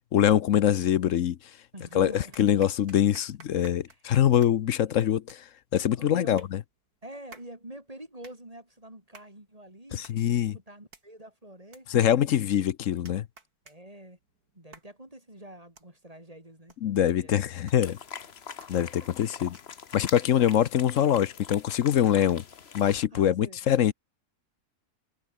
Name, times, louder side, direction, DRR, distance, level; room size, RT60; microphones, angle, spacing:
voice 1, 0.1-1.4 1.9-2.1 2.4-5.4 5.7-6.6 9.9-10.6 11.9-13.3 16.8-18.0 18.7-19.6 19.9-22.4 22.7-23.9, left 10 dB, 60° left, 1.0 m, -24 dB
voice 2, 1.7-2.4 3.9-4.0 6.0-6.4 7.0-12.1 13.7-14.2 14.5-16.8 17.1-17.4 18.8-18.9 20.2-20.3 23.1-23.7, right 1 dB, 20° right, 5.6 m, -46 dB
sound 1, 1.7-1.8 2.3-19.9, right 3 dB, 75° right, 4.1 m, -57 dB
sound 2, 17.8-23.1, left 7 dB, 45° left, 1.3 m, -43 dB
omnidirectional pair, 1.6 m